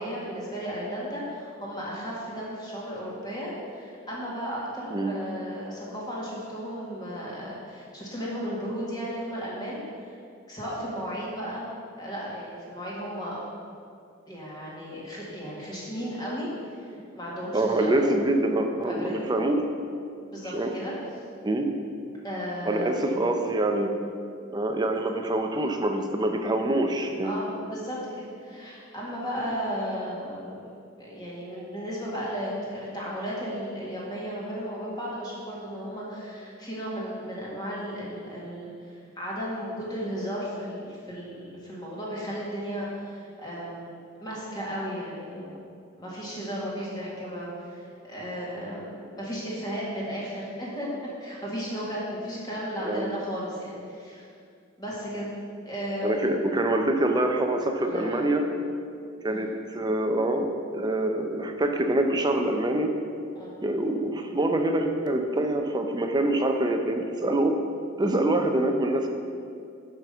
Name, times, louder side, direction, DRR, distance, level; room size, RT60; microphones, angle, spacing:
voice 1, 0.0-10.1 10.5-11.6 12.0-13.4 14.3-17.9 18.8-19.3 20.2-20.9 22.2-23.1 27.2-30.7 31.0-43.9 44.2-45.6 46.0-54.2 54.8-55.3 55.7-56.3 57.8-58.3 59.3-59.4 63.4-63.6 68.0-68.2, equal, 20° left, -6 dB, 1.8 m, -35 dB
voice 2, 17.5-19.7 20.5-20.7 21.4-21.7 22.6-23.9 24.5-27.3 52.8-53.1 56.0-58.5 59.2-62.9 63.6-67.6 68.0-69.1, right 1 dB, 20° right, 4 dB, 0.5 m, -25 dB
5.8 x 5.2 x 6.7 m, 2.4 s
head